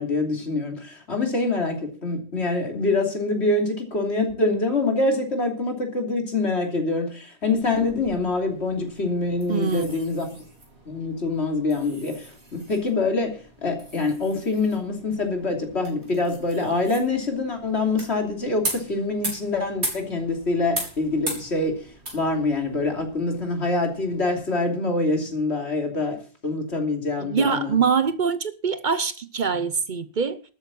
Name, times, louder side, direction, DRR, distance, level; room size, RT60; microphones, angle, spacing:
voice 1, 0.0-10.3 10.9-21.9 22.1-27.8, left 3 dB, 80° left, 3.3 m, -25 dB
sound 1, 7.6-24.4, right 1 dB, 85° right, 5.0 m, -39 dB
voice 2, 9.5-10.0 27.2-30.4, right 6 dB, 50° right, 0.8 m, -24 dB
13.0 x 8.9 x 7.1 m
omnidirectional pair, 1.1 m